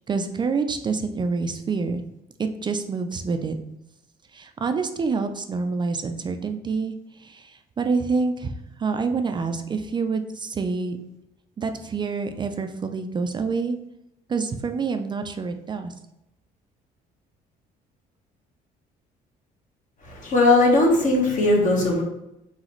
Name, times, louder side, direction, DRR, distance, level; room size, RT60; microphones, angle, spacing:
voice 1, 0.1-2.0 2.6-3.6 4.3-6.9 7.2-8.5 8.8-11.0 11.6-13.8 14.3-15.9, right 4 dB, 25° right, 7 dB, 0.3 m, -27 dB
voice 2, 20.0-22.0, left 2 dB, 50° left, -1 dB, 1.3 m, -19 dB
4.0 x 3.9 x 3.0 m, 0.86 s
cardioid pair, 110°, 17 cm